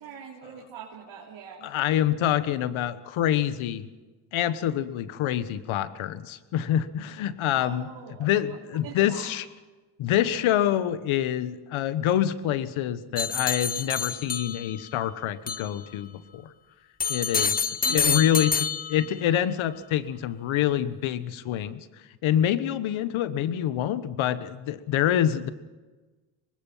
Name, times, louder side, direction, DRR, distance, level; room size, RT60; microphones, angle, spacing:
voice 1, 0.0-1.7 7.5-8.6 8.8-9.3 17.8-18.4, right 8 dB, 70° right, -3 dB, 3.3 m, -42 dB
voice 2, 1.6-3.9 4.3-7.9 8.2-9.4 10.0-16.5 17.1-21.9 22.2-25.5, left 11 dB, 75° left, 14 dB, 1.3 m, -26 dB
sound 1, 13.2-14.9 15.5-15.7 17.0-19.3, left 6 dB, 20° left, 0.6 m, -27 dB
25.0 x 20.5 x 5.7 m, 1.2 s
supercardioid pair, 70°, 49 cm